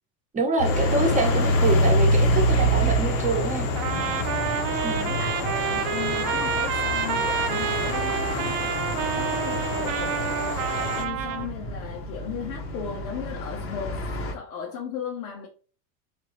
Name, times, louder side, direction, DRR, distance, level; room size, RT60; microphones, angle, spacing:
voice 1, 0.3-3.7 4.8-5.1, right 3 dB, 20° right, 0.9 m, -26 dB
sound 1, 0.6-11.1, left 5 dB, 60° left, 0.9 m, -32 dB
sound 2, 0.6-14.3, equal, 30° left, 0.8 m, -27 dB
voice 2, 1.1-1.5 2.2-2.5 5.0-8.6 9.2-15.5, left 7 dB, 90° left, 1.1 m, -36 dB
Trumpet, 3.8-11.5, right 9 dB, 60° right, 0.7 m, -28 dB
3.7 x 3.5 x 3.0 m
supercardioid pair, 140°, 42 cm